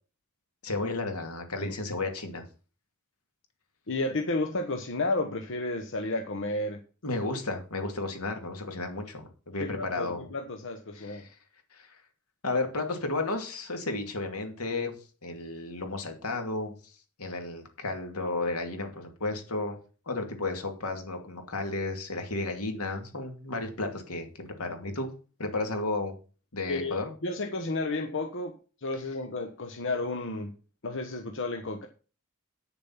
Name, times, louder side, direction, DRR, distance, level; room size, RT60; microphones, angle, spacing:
voice 1, 0.6-2.4 7.0-10.3 10.9-11.3 11.7-12.0 12.4-16.8 17.2-19.8 20.1-25.1 25.4-26.1 26.5-27.1, left 2 dB, 85° left, 5 dB, 2.6 m, -33 dB
voice 2, 3.9-6.8 9.6-11.2 26.7-28.5 28.8-30.5 30.8-31.9, left 2 dB, 60° left, 5 dB, 1.1 m, -32 dB
9.5 x 7.1 x 5.8 m, 0.36 s
head